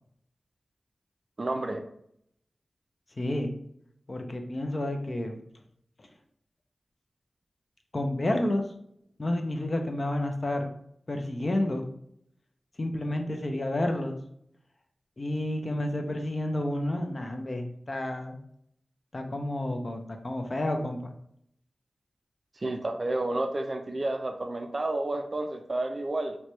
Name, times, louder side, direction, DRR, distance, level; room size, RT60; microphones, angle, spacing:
voice 1, 1.4-1.8 22.6-26.4, right 2 dB, 40° right, 5 dB, 0.4 m, -30 dB
voice 2, 3.2-3.5 4.1-5.4 7.9-8.6 9.2-10.7 11.1-11.8 12.8-14.2 15.2-18.4 19.1-21.1, left 1 dB, 40° left, 4 dB, 0.5 m, -30 dB
3.0 x 2.2 x 4.2 m, 0.70 s
wide cardioid pair, 100°, 0 cm